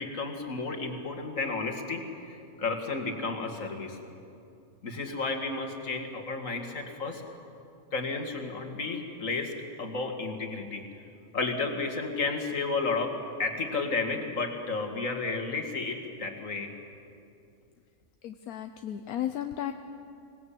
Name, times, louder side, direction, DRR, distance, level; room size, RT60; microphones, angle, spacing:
voice 1, 0.0-4.0 4.8-7.2 7.9-9.5 9.8-10.8 11.3-13.1 13.4-16.7, left 3 dB, 60° left, 4 dB, 2.5 m, -32 dB
voice 2, 18.2-19.7, left 11 dB, 85° left, 7 dB, 1.3 m, -34 dB
25.0 x 18.5 x 8.6 m, 2.6 s
omnidirectional pair, 1.5 m